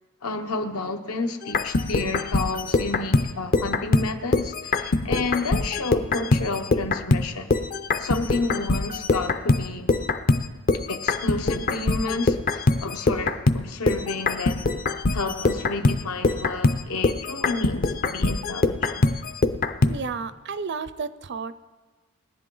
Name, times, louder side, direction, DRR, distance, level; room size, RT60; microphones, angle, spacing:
voice 1, 0.2-7.5 8.0-9.9 10.9-14.6 15.1-19.0, left 3 dB, 80° left, 5 dB, 1.1 m, -30 dB
sound 1, 1.4-7.3 7.5-20.0, left 3 dB, 40° left, 0.5 m, -23 dB
voice 2, 19.8-21.5, right 5 dB, 50° right, 14 dB, 0.5 m, -32 dB
21.0 x 10.5 x 3.9 m, 1.3 s
head